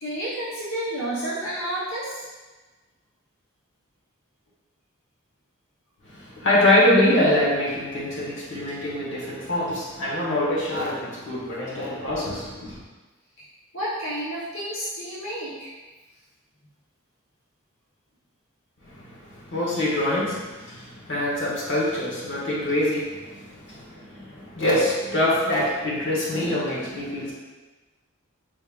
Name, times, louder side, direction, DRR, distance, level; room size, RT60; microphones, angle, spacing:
voice 1, 0.0-2.2 13.7-15.7, right 1 dB, 75° left, -8 dB, 1.1 m, -30 dB
voice 2, 6.1-12.8 18.8-27.3, left 1 dB, 60° left, -6 dB, 1.2 m, -24 dB
5.3 x 3.5 x 2.5 m, 1.2 s
head